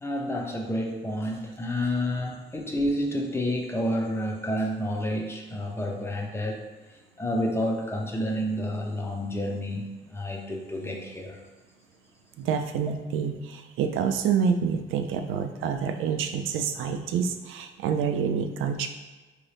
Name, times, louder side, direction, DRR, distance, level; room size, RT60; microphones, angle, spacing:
voice 1, 0.0-6.6 7.2-11.4, equal, 10° left, 1 dB, 0.6 m, -29 dB
voice 2, 12.4-18.9, right 7 dB, 85° right, 7 dB, 0.4 m, -27 dB
3.9 x 2.8 x 3.3 m, 1.2 s
cardioid pair, 90°, 20 cm